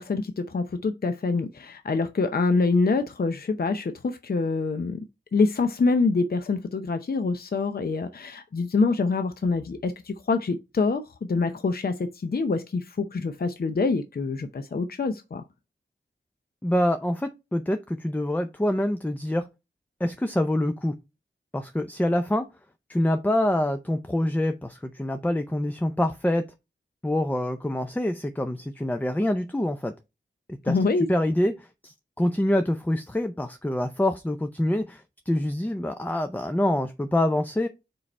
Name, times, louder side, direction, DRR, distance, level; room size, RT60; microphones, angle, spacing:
voice 1, 0.0-5.0 5.3-11.0 11.3-15.4 30.6-31.1, left 4 dB, 55° left, 0.6 m, -25 dB
voice 2, 16.6-19.5 20.0-21.0 21.5-22.4 22.9-26.4 27.0-29.9 30.6-30.8 31.1-37.7, left 1 dB, 10° left, 0.5 m, -26 dB
4.9 x 4.7 x 4.3 m
wide cardioid pair, 80°, 19 cm